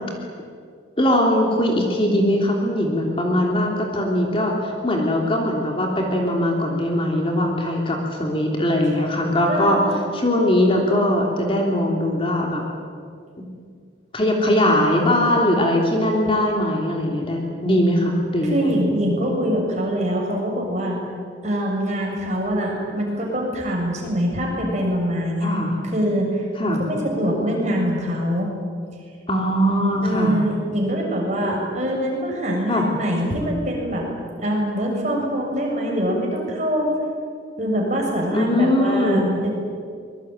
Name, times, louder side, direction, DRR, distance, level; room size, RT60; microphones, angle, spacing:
voice 1, 1.0-9.8 10.1-12.6 14.1-18.8 25.4-25.7 26.6-26.8 29.3-30.4 32.7-32.9 38.3-39.3, left 1 dB, 25° left, 0 dB, 3.3 m, -20 dB
voice 2, 18.4-21.0 21.4-25.5 25.9-28.5 30.0-34.1 34.4-36.9 37.6-39.5, equal, 35° right, -1 dB, 6.8 m, -24 dB
25.0 x 21.5 x 9.1 m, 2.2 s
head